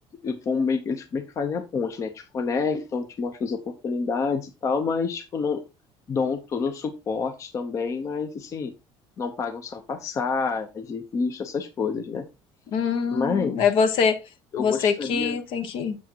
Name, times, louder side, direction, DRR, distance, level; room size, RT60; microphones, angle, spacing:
voice 1, 0.2-5.6 6.1-8.7 9.2-12.2 13.1-13.7 14.5-15.4, left 5 dB, 30° left, 0.8 m, -28 dB
voice 2, 12.7-14.2 14.6-16.0, left 6 dB, 60° left, 1.2 m, -24 dB
8.4 x 7.2 x 2.9 m
cardioid pair, 170°, 10 cm